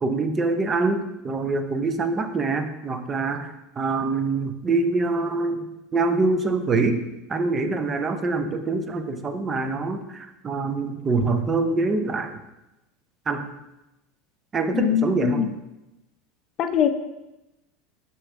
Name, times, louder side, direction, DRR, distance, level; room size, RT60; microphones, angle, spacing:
voice 1, 0.0-5.7 5.9-7.0 7.3-12.4 13.3-13.5 14.5-15.5, right 3 dB, 25° right, 8 dB, 0.6 m, -25 dB
voice 2, 14.7-15.5 16.6-16.9, left 9 dB, 40° left, 10 dB, 0.5 m, -22 dB
7.9 x 6.0 x 3.6 m, 0.95 s
supercardioid pair, 130°, 0 cm